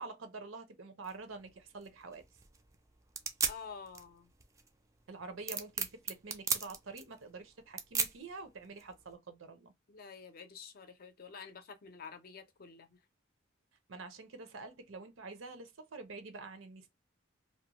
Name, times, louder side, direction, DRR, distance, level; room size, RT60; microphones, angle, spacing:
voice 1, 0.0-2.2 5.1-9.7 13.9-16.9, right 3 dB, 85° right, 0.7 m, -47 dB
sound 1, 1.0-9.1, right 5 dB, 15° right, 0.3 m, -39 dB
voice 2, 3.5-4.3 9.9-13.0, left 6 dB, 50° left, 0.5 m, -49 dB
2.6 x 2.1 x 2.9 m
head